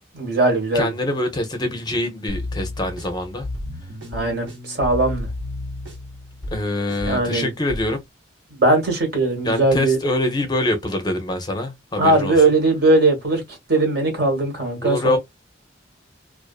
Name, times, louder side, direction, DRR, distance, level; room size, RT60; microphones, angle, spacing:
voice 1, 0.1-0.9 4.1-5.3 7.1-7.5 8.6-10.0 12.0-13.4 13.7-15.2, right 2 dB, 55° right, 1.3 m, -19 dB
voice 2, 0.7-3.5 6.5-8.0 9.4-12.5 14.8-15.2, left 1 dB, 20° left, 0.5 m, -24 dB
sound 1, 2.3-7.9, left 2 dB, 75° right, 1.4 m, -32 dB
2.4 x 2.4 x 2.3 m
head